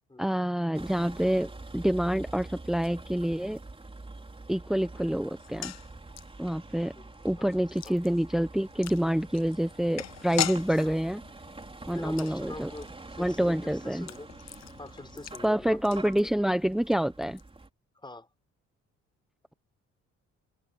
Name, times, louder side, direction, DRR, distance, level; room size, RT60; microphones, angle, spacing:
voice 1, 0.2-3.6 4.5-5.7 6.4-6.9 7.2-11.2 11.9-12.7 13.2-14.1 15.4-17.4, equal, ahead, 1.0 m, -27 dB
Vehicle, 0.7-17.7, right 2 dB, 20° right, 4.1 m, -46 dB
sound 1, 5.3-16.6 16.8-16.9 17.2-17.4, left 11 dB, 60° left, 1.0 m, -40 dB
voice 2, 7.0-7.5 7.9-8.0 10.8-11.0 11.8-14.3 14.8-15.8 18.0-18.3, left 2 dB, 15° left, 5.7 m, -45 dB
cardioid pair, 90°, 30 cm